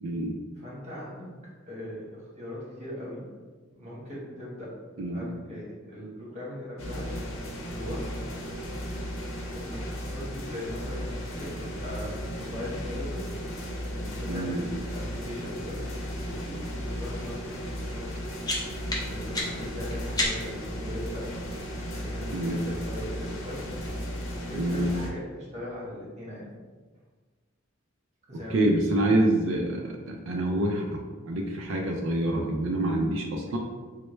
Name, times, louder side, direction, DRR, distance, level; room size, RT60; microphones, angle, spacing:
voice 1, 0.0-0.4 5.0-5.3 14.3-14.6 22.3-22.6 24.5-24.9 28.5-33.6, right 1 dB, 70° right, 0 dB, 0.4 m, -27 dB
voice 2, 0.6-1.3 1.7-3.2 3.7-4.8 5.1-7.1 7.7-8.6 9.5-13.3 13.8-18.1 19.0-21.4 21.8-23.7 24.0-26.5 28.3-28.7, left 1 dB, 35° right, -6 dB, 1.2 m, -40 dB
sound 1, 6.8-25.1, equal, 85° left, 0.6 m, -35 dB
sound 2, 18.0-20.7, left 2 dB, 20° left, 0.6 m, -33 dB
4.4 x 2.0 x 3.1 m, 1.4 s
head